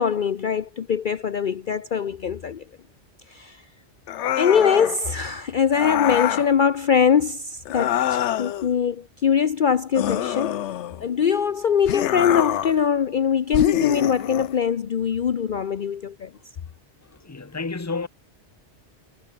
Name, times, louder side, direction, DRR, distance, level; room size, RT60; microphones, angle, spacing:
voice 1, 0.0-2.6 3.3-3.6 4.4-10.6 11.0-16.3, left 7 dB, 50° left, 0.8 m, -22 dB
sound 1, 4.1-5.0 5.7-6.5 7.7-8.7 10.0-11.1 11.9-12.8 13.5-14.5, left 11 dB, 85° left, 1.0 m, -25 dB
voice 2, 17.0-18.1, left 4 dB, 15° left, 1.0 m, -31 dB
omnidirectional pair, 1.2 m